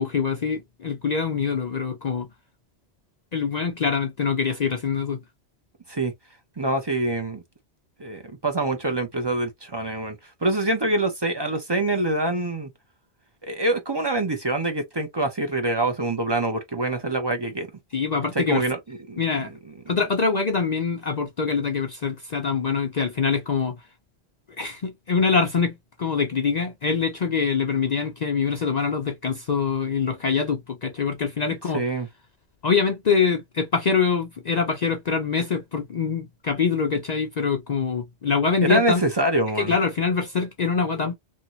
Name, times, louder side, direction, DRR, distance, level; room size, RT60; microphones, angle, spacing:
voice 1, 0.0-2.3 3.3-5.2 17.9-18.6 19.2-19.5 19.9-23.8 24.6-31.8 32.6-39.0 39.6-41.2, left 5 dB, 50° left, 0.6 m, -24 dB
voice 2, 6.6-7.4 8.0-10.2 10.4-12.7 13.4-17.7 18.3-19.5 31.7-32.1 38.6-39.7, right 2 dB, 30° right, 0.5 m, -25 dB
2.8 x 2.7 x 2.8 m
omnidirectional pair, 1.1 m